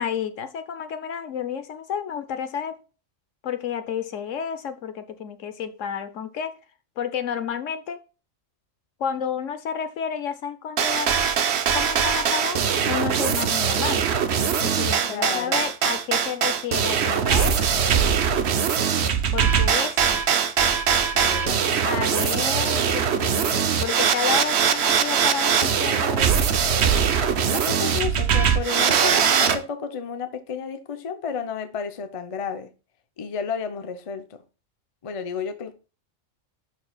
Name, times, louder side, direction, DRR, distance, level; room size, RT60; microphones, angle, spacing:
voice 1, 0.0-2.8 3.4-6.5 7.0-8.0 9.0-11.2 11.7-14.0 14.6-17.8 19.3-20.2 21.8-26.3, left 7 dB, 70° left, 1.2 m, -31 dB
sound 1, 10.8-29.6, right 7 dB, 60° right, 1.0 m, -21 dB
voice 2, 15.1-15.7 21.1-22.4 27.5-32.7 33.2-34.4 35.0-35.7, left 6 dB, 35° left, 0.6 m, -32 dB
11.5 x 4.6 x 2.3 m
omnidirectional pair, 1.3 m